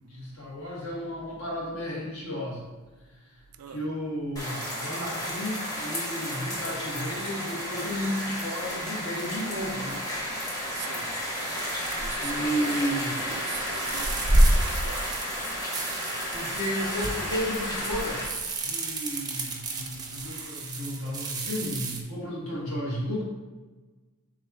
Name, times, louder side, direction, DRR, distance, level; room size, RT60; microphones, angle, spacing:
voice 1, 0.1-2.6 3.7-10.0 12.2-13.1 16.3-18.2 18.6-23.2, equal, 70° left, 1.4 m, -33 dB
sound 1, 4.4-18.3, equal, 15° left, 0.9 m, -33 dB
sound 2, 8.6-9.6 11.3-12.9 13.3-22.0, right 1 dB, 20° right, 0.5 m, -29 dB
voice 2, 10.8-11.1 12.0-12.8 13.1-15.0, right 9 dB, 80° right, 0.4 m, -42 dB
3.7 x 3.0 x 4.6 m
head